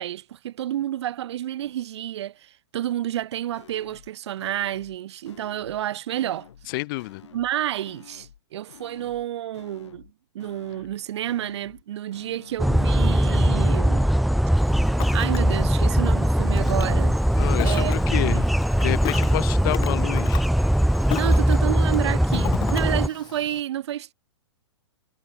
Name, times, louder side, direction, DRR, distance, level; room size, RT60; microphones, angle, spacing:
voice 1, 0.0-6.5 7.3-14.1 15.1-17.2 17.6-18.5 21.1-24.1, right 12 dB, 65° right, 0.6 m, -30 dB
sound 1, 3.2-3.3 3.5-4.1 4.4-5.0 5.2-5.8 6.1-6.7 7.0-7.5 7.8-8.4 8.7-9.3 9.5-10.1 10.4-11.0 11.2-11.8 12.1-12.7 13.0-13.5 13.8-14.4 14.7-15.3 15.5-16.1 16.4-17.0 17.2-17.8 18.1-18.7 19.0-19.5 19.8-20.2, left 9 dB, 75° left, 5.4 m, -49 dB
voice 2, 6.7-7.2 17.4-18.5 18.8-20.4, left 21 dB, 45° left, 0.7 m, -29 dB
sound 2, 12.6-23.1, equal, ahead, 0.3 m, -21 dB
Ocean, 14.6-23.6, left 16 dB, 30° left, 2.6 m, -37 dB
hypercardioid pair, 130°, 15 cm